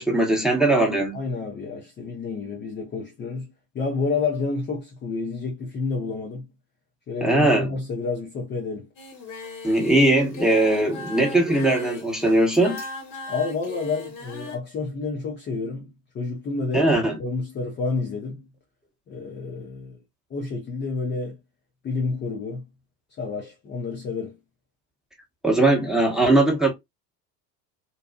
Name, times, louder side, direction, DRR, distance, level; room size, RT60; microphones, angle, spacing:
voice 1, 0.0-1.2 7.2-7.7 9.6-12.8 16.7-17.2 25.4-26.7, right 1 dB, ahead, 0.9 m, -20 dB
voice 2, 1.1-3.5 3.7-6.5 7.1-8.9 13.3-18.5 19.1-20.0 20.3-21.4 21.8-22.7 23.2-24.4, left 4 dB, 25° left, 0.5 m, -29 dB
Singing, 9.0-14.6, left 3 dB, 40° left, 1.1 m, -38 dB
2.6 x 2.3 x 2.2 m
hypercardioid pair, 70°, 49 cm